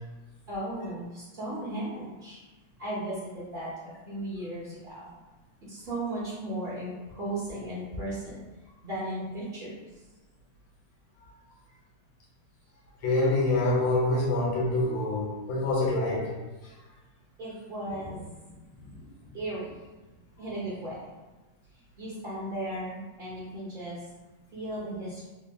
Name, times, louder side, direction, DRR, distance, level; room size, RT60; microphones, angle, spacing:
voice 1, 0.5-2.4 2.8-5.1 5.7-8.4 8.8-9.8 17.4-19.7 20.4-21.1 22.0-24.1 24.5-25.3, right 1 dB, 55° right, -8 dB, 0.6 m, -36 dB
voice 2, 13.0-16.3, left 2 dB, 85° left, -3 dB, 1.6 m, -26 dB
3.4 x 2.3 x 3.3 m, 1.2 s
omnidirectional pair, 2.0 m